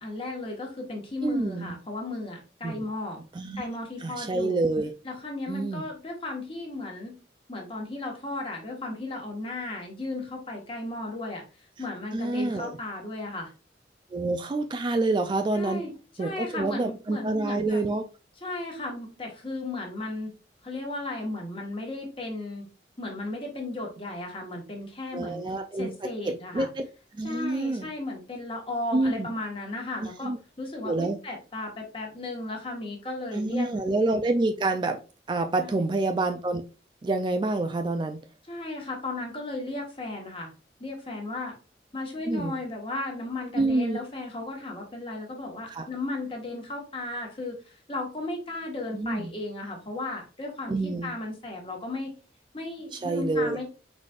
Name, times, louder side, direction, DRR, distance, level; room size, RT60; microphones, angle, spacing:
voice 1, 0.0-3.2 3.6-4.6 5.0-7.1 7.5-11.4 11.8-13.5 15.5-17.8 18.4-20.3 20.6-22.7 23.0-25.4 25.7-26.7 27.2-33.7 35.6-35.9 38.5-40.5 40.8-41.6 41.9-52.1 52.5-53.6, left 2 dB, 30° left, 1.3 m, -35 dB
voice 2, 1.2-1.8 2.6-2.8 3.3-3.6 4.0-4.9 5.5-5.9 12.1-12.7 14.1-15.8 16.2-18.0 25.1-26.9 27.2-27.9 28.9-29.3 30.2-30.4 30.8-31.2 33.3-35.0 35.3-36.6 37.0-38.2 42.3-42.6 43.5-44.0 45.7-45.9 48.9-49.3 50.7-51.1 52.9-53.6, right 2 dB, 25° right, 0.3 m, -27 dB
4.9 x 4.1 x 2.4 m
head